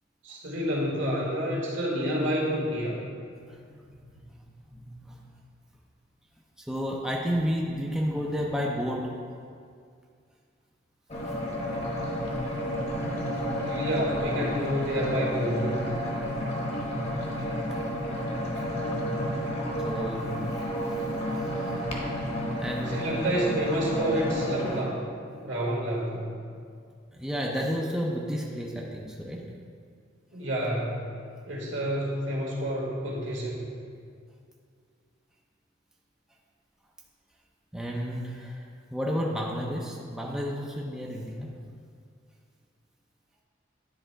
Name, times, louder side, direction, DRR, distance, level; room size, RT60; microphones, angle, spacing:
voice 1, 0.2-3.0 13.6-15.7 22.9-25.0 25.4-26.4 30.3-31.1 31.5-33.6, equal, 70° right, -3 dB, 1.6 m, -29 dB
voice 2, 3.9-4.2 4.7-5.2 6.6-9.2 19.8-20.4 20.9-21.0 21.6-21.8 22.6-23.3 27.1-29.5 37.7-41.5, equal, 5° right, -2 dB, 0.5 m, -32 dB
sound 1, 11.1-24.8, equal, 35° left, 1.0 m, -31 dB
10.0 x 3.4 x 4.5 m, 2.2 s
head